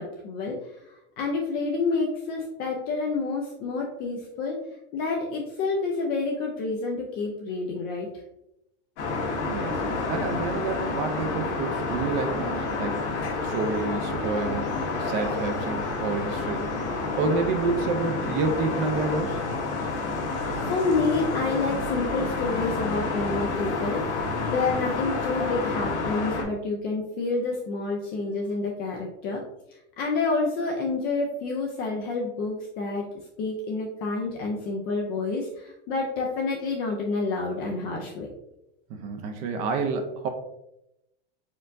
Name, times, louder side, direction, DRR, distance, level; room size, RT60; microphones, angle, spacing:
voice 1, 0.0-4.6 4.9-8.1 20.7-29.4 29.7-33.1 33.4-38.3, left 3 dB, 30° left, 0 dB, 0.4 m, -29 dB
sound 1, 9.0-26.4, left 3 dB, 85° left, 1.4 m, -29 dB
voice 2, 9.5-19.4 38.9-40.3, right 4 dB, 35° right, 5 dB, 0.5 m, -29 dB
4.4 x 3.6 x 2.5 m, 0.85 s
supercardioid pair, 155°, 33 cm